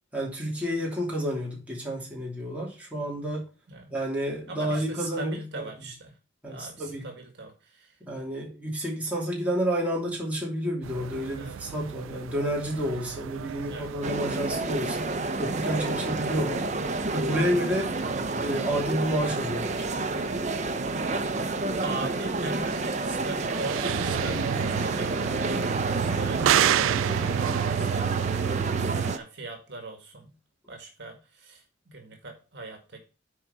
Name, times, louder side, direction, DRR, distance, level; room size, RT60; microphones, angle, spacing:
voice 1, 0.1-3.5 3.9-5.6 6.4-7.1 8.0-15.1 15.4-16.7 17.1-17.9 18.4-19.8, equal, 5° right, 2.8 m, -30 dB
voice 2, 4.5-6.1 6.5-7.9 11.3-11.6 13.7-13.9 14.9-15.1 17.8-18.0 21.4-25.4 25.9-27.4 27.7-30.4 30.7-33.0, right 2 dB, 60° right, 2.0 m, -40 dB
sound 1, 10.8-29.1, right 10 dB, 90° right, 0.3 m, -32 dB
sound 2, 14.0-29.2, right 2 dB, 40° right, 0.8 m, -30 dB
7.8 x 4.8 x 5.5 m
head